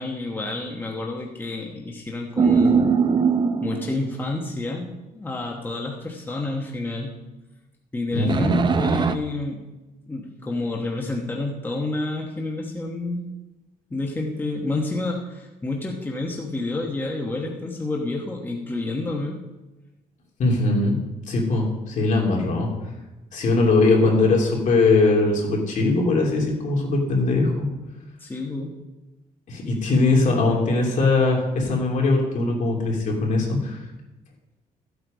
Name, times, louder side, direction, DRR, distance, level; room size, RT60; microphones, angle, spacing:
voice 1, 0.0-2.9 3.6-7.1 7.9-9.6 10.1-13.3 13.9-19.4 28.2-28.8, left 2 dB, 15° left, 0 dB, 1.1 m, -29 dB
sound 1, 2.4-4.2 8.3-9.2, right 5 dB, 30° right, 0.6 m, -20 dB
voice 2, 8.1-8.7 20.4-21.0 21.3-22.7 23.3-27.7 29.5-33.8, left 3 dB, 55° left, -1 dB, 3.0 m, -21 dB
13.5 x 8.2 x 5.1 m, 1.1 s
cardioid pair, 140°, 15 cm